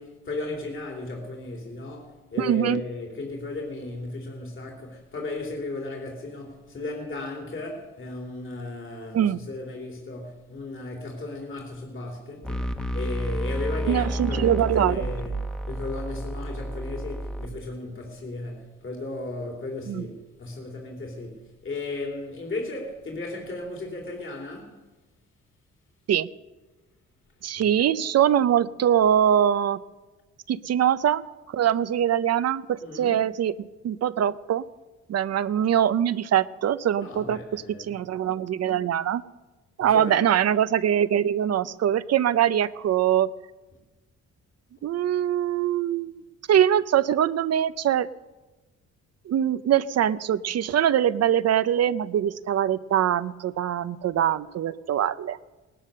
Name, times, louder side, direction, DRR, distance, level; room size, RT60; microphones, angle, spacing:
voice 1, 0.0-24.8 27.5-27.7 32.8-33.2 37.0-38.0 39.8-40.3, left 2 dB, 45° left, 3.4 m, -35 dB
voice 2, 2.4-2.8 9.1-9.4 13.9-15.0 19.9-20.1 26.1-26.3 27.4-29.8 30.5-33.5 33.8-34.6 35.1-39.2 39.8-43.3 44.8-46.2 46.5-48.1 49.3-55.4, right 10 dB, 55° right, 0.7 m, -23 dB
sound 1, 12.4-17.5, equal, 5° left, 1.3 m, -30 dB
18.5 x 11.5 x 6.6 m
cardioid pair, 90°, 30 cm